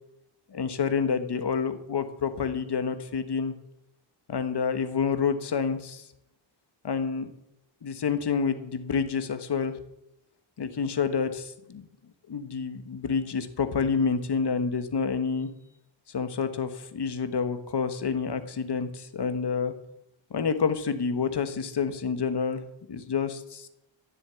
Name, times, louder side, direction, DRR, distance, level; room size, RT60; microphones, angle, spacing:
voice 1, 0.5-3.5 4.3-6.1 6.8-7.3 7.8-9.7 10.6-11.9 12.3-15.5 16.1-19.7 20.3-22.6 22.9-23.7, left 6 dB, 55° left, 10 dB, 1.4 m, -28 dB
14.0 x 7.4 x 8.3 m, 0.82 s
wide cardioid pair, 155°, 46 cm